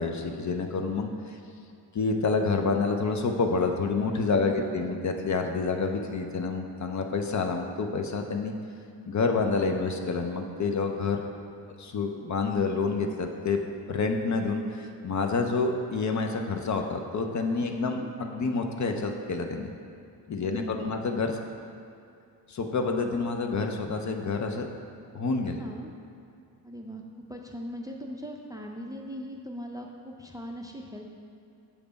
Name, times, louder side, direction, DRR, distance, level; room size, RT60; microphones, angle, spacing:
voice 1, 0.0-1.4 1.9-8.5 9.0-11.2 11.8-13.6 13.9-19.7 20.3-21.3 22.5-24.7 25.1-25.6, left 4 dB, 40° left, 4 dB, 0.6 m, -28 dB
voice 2, 4.4-5.0 17.7-18.1 20.4-21.0 25.6-25.9 26.6-27.0 27.3-31.1, equal, 10° right, 1 dB, 0.5 m, -40 dB
7.1 x 3.3 x 5.1 m, 2.5 s
supercardioid pair, 65°, 43 cm